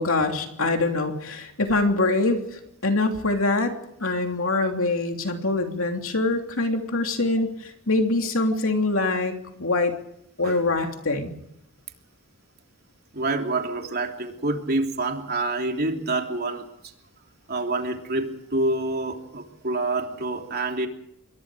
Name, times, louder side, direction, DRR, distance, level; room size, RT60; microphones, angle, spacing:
voice 1, 0.0-3.7 4.0-9.3 9.6-9.9 10.4-11.3, left 2 dB, 65° left, 4 dB, 3.1 m, -24 dB
voice 2, 13.1-16.6 17.5-20.9, right 2 dB, 45° right, 3 dB, 3.3 m, -27 dB
27.0 x 22.5 x 5.1 m, 0.77 s
head